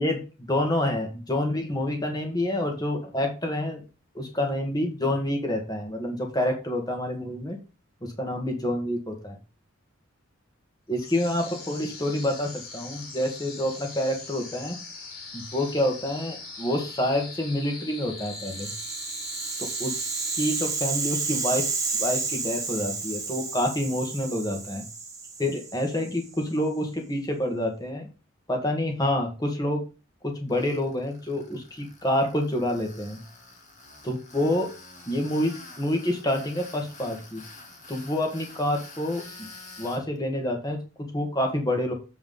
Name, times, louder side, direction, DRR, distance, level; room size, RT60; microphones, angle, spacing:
voice 1, 0.0-3.8 4.1-7.6 8.0-9.4 10.9-14.8 15.3-18.7 19.6-20.0 20.3-21.7 22.0-24.8 25.4-28.1 28.5-29.8 30.2-33.2 34.0-34.7 35.1-37.4 37.9-39.2 39.8-41.9, left 1 dB, 20° left, 3 dB, 1.9 m, -27 dB
sound 1, 10.9-21.2, left 3 dB, 90° left, 3.1 m, -41 dB
Rattle (instrument), 18.3-26.5, right 4 dB, 15° right, 1.3 m, -31 dB
Tools, 30.5-40.0, left 2 dB, 35° left, 2.2 m, -47 dB
7.7 x 4.7 x 5.4 m, 0.31 s
head